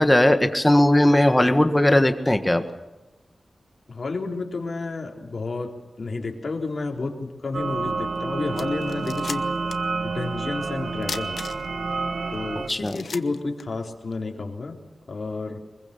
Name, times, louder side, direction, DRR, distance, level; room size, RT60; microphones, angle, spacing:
voice 1, 0.0-2.6 12.7-13.0, left 1 dB, 15° left, 8 dB, 1.6 m, -18 dB
voice 2, 3.9-9.5 10.0-11.5 12.3-14.8 15.1-15.6, left 3 dB, 50° left, 1 dB, 3.7 m, -31 dB
sound 1, 7.5-12.7, right 4 dB, 65° right, 1.4 m, -29 dB
sound 2, 8.1-8.2 8.5-9.9 10.2-10.3 11.0-11.9 12.3-12.4 12.7-14.2, left 5 dB, 70° left, 1.1 m, -37 dB
24.5 x 22.0 x 6.9 m, 1.0 s
wide cardioid pair, 115°, 0 cm